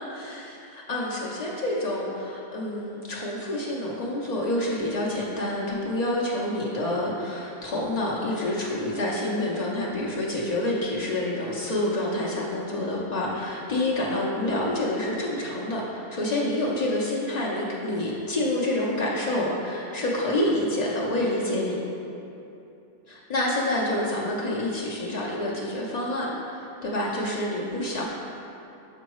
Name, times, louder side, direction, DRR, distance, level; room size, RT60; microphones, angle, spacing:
voice 1, 0.0-21.8 23.1-28.1, left 1 dB, 85° left, -5 dB, 0.3 m, -28 dB
6.1 x 5.4 x 3.0 m, 2.9 s
omnidirectional pair, 1.6 m